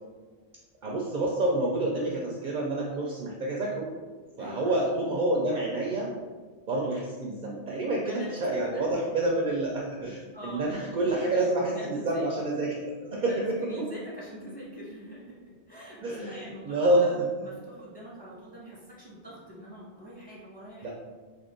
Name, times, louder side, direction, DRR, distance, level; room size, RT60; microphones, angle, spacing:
voice 1, 0.8-3.9 4.4-6.1 6.7-13.3 13.8-13.9 16.0-17.3 20.8-20.9, right 2 dB, 55° right, -2 dB, 0.6 m, -28 dB
voice 2, 4.4-5.0 8.0-9.2 10.3-12.3 13.3-15.4 15.7-20.9, equal, 10° left, -7 dB, 1.1 m, -44 dB
3.5 x 2.5 x 3.7 m, 1.4 s
omnidirectional pair, 1.1 m